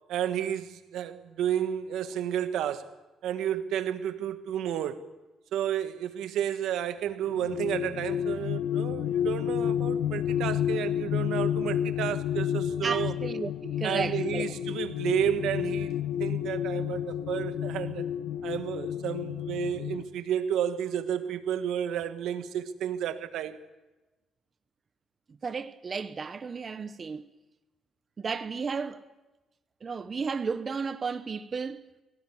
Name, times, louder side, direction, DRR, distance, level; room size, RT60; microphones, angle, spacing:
voice 1, 0.1-2.9 3.2-5.1 5.5-13.1 13.8-18.1 18.4-23.6, right 10 dB, 85° right, 1.5 m, -31 dB
sound 1, 7.2-20.0, left 10 dB, 90° left, 1.0 m, -30 dB
voice 2, 12.8-14.4 25.4-27.3 28.2-29.1 29.8-31.9, right 5 dB, 40° right, 0.8 m, -33 dB
23.0 x 17.5 x 9.8 m
cardioid pair, 90°, 0 cm